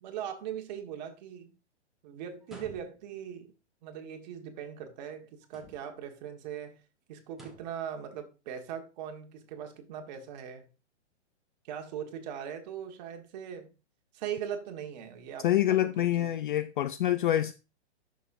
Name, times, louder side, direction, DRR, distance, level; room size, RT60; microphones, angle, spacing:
voice 1, 0.0-1.5 2.0-3.5 3.8-6.8 7.1-10.7 11.6-13.7 14.1-16.3, right 9 dB, 40° right, 1.5 m, -40 dB
sound 1, 2.4-3.2 5.4-6.1 7.3-7.8, right 1 dB, ahead, 1.4 m, -51 dB
voice 2, 15.4-17.5, left 12 dB, 45° left, 0.4 m, -26 dB
11.0 x 6.5 x 2.6 m
hypercardioid pair, 145°, 35 cm